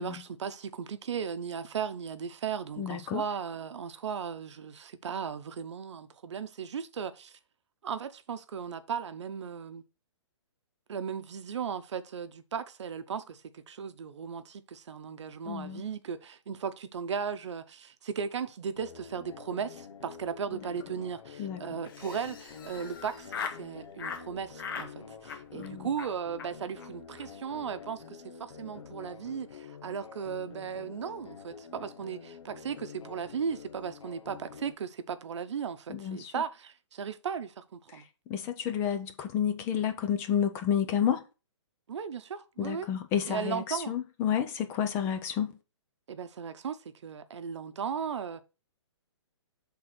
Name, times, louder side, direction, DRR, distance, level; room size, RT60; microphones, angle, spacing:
voice 1, 0.0-7.4 7.8-9.8 10.9-38.0 41.9-42.9 43.3-44.0 46.1-48.4, right 7 dB, 70° right, 0.8 m, -36 dB
voice 2, 2.8-3.2 15.5-15.8 21.4-21.6 25.5-25.9 35.9-36.3 37.9-38.0 38.3-41.2 42.6-45.5, left 9 dB, 15° left, 0.5 m, -30 dB
sound 1, 18.7-34.7, left 6 dB, 85° left, 1.2 m, -48 dB
Laughter, 21.8-23.6 24.0-24.2 24.6-24.9 25.2-25.7 26.0-26.1 26.4-26.5 26.8-26.9 27.1-27.3 27.5-27.9, left 6 dB, 45° left, 1.1 m, -40 dB
6.1 x 3.8 x 5.9 m
hypercardioid pair, 160°, 15 cm